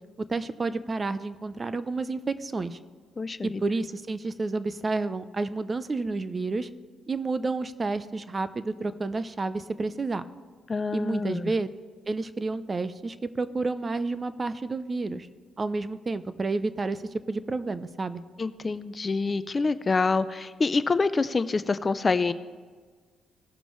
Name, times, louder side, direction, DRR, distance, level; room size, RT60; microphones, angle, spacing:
voice 1, 0.2-2.8 3.4-6.7 7.1-10.2 10.9-11.7 12.1-15.3 15.6-17.0 17.3-18.2, right 3 dB, 30° right, 13 dB, 0.5 m, -30 dB
voice 2, 3.2-3.6 10.7-11.5 18.4-22.3, left 4 dB, 30° left, 14 dB, 0.4 m, -26 dB
18.0 x 6.9 x 3.1 m, 1.5 s
cardioid pair, 90°, 0 cm